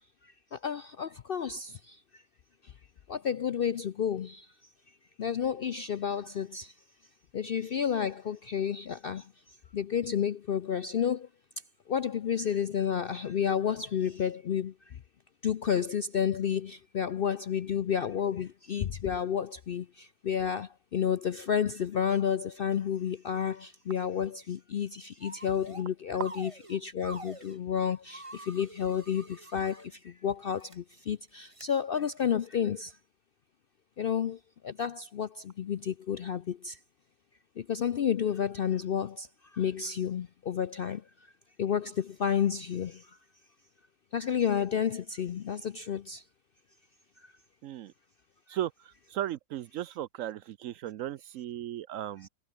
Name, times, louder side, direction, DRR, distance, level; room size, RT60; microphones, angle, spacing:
voice 1, 0.6-1.7 3.1-4.4 5.2-6.7 7.3-9.2 9.7-11.3 11.9-14.7 15.4-19.8 20.2-29.2 29.5-29.8 30.2-30.7 31.1-32.9 34.0-34.4 34.6-35.3 35.6-36.7 37.7-39.3 39.6-41.0 41.6-42.9 44.1-46.2, left 8 dB, 60° left, 0.6 m, -30 dB
sound 1, 25.2-25.9 26.2-27.6 28.1-29.9 30.5-30.8 31.5-31.7, right 2 dB, 20° right, 2.3 m, -46 dB
voice 2, 47.6-47.9 48.5-52.3, right 12 dB, 70° right, 0.9 m, -36 dB
omnidirectional pair, 1.6 m